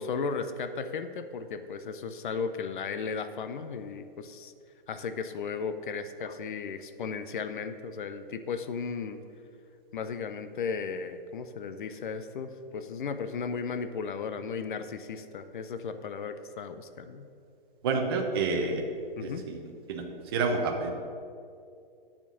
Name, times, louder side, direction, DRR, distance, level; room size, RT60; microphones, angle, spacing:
voice 1, 0.0-4.5 4.9-9.2 9.9-17.3 18.4-18.5 19.2-19.4, left 5 dB, 60° left, 10 dB, 0.7 m, -35 dB
voice 2, 17.8-18.8 19.2-19.6 19.9-20.0 20.3-20.9, right 4 dB, 25° right, 2 dB, 0.7 m, -28 dB
8.7 x 4.4 x 7.0 m, 2.4 s
hypercardioid pair, 160°, 29 cm